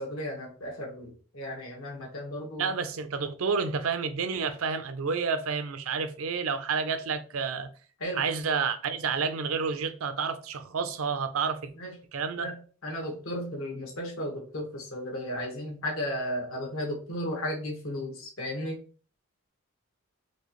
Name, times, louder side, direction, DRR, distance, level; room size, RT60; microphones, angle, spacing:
voice 1, 0.0-2.7 8.0-8.2 11.8-12.0 12.3-18.8, equal, 80° left, 1.5 m, -35 dB
voice 2, 2.6-7.7 8.1-11.7 12.1-12.5, right 5 dB, 85° right, 0.5 m, -30 dB
4.4 x 2.7 x 3.0 m
head